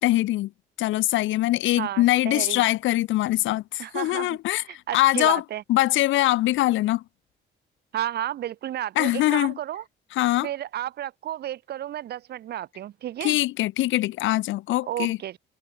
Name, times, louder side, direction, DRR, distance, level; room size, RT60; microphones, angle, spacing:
voice 1, 0.0-0.5 0.8-5.4 5.7-7.0 9.0-9.5 10.1-10.5 13.2-15.2, left 16 dB, 80° left, 0.5 m, -23 dB
voice 2, 1.8-2.6 3.8-4.4 4.7-5.6 7.9-9.8 10.4-13.4 14.9-15.4, right 12 dB, 55° right, 0.4 m, -32 dB
cardioid pair, 90°, 20 cm